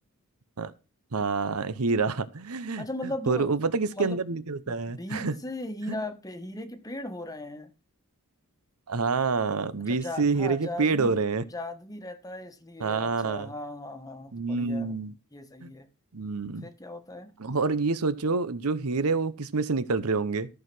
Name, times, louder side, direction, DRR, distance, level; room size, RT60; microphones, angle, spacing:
voice 1, 1.1-5.3 8.9-11.4 12.8-13.5 14.3-15.1 15.6-15.7 16.1-16.6 17.4-20.5, right 4 dB, 75° right, 0.9 m, -27 dB
voice 2, 2.8-3.5 3.9-4.2 4.7-7.7 9.9-11.2 11.5-15.0 15.3-15.9 16.6-17.3, left 1 dB, 15° left, 1.3 m, -37 dB
14.0 x 4.7 x 6.1 m
head